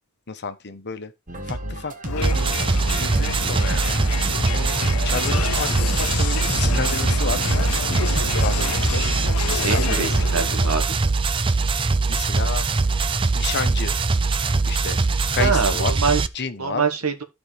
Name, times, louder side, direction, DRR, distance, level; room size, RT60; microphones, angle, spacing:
voice 1, 0.3-1.1 1.4-2.4 3.0-3.9 5.0-7.4 8.2-9.0 9.5-10.5 12.1-12.7 13.3-14.0 14.7-15.0 15.3-15.9 16.3-16.8, left 4 dB, 55° left, 1.0 m, -30 dB
sound 1, 1.3-8.7, right 1 dB, 40° right, 1.6 m, -32 dB
Crowd, 2.1-10.9, left 7 dB, 80° left, 0.5 m, -30 dB
sound 2, 2.2-16.3, right 3 dB, 25° right, 0.4 m, -22 dB
voice 2, 9.6-11.0 15.4-16.2 16.6-17.2, right 5 dB, 85° right, 1.4 m, -24 dB
13.5 x 4.8 x 3.4 m
head